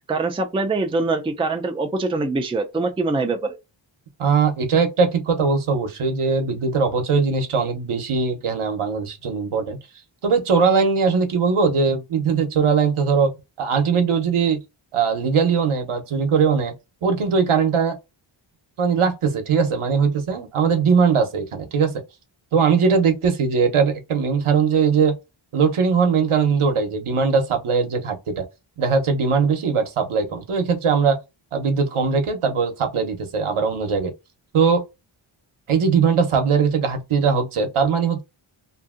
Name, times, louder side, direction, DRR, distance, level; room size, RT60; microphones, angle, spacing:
voice 1, 0.1-3.6, right 3 dB, 10° right, 0.4 m, -23 dB
voice 2, 4.2-9.8 10.2-13.3 13.6-14.6 14.9-16.7 17.0-18.0 18.8-21.9 22.5-25.1 25.5-28.5 28.8-31.2 31.5-34.1 34.5-34.8 35.7-38.2, right 5 dB, 75° right, 0.8 m, -20 dB
2.7 x 2.6 x 2.4 m
wide cardioid pair, 100°, 50 cm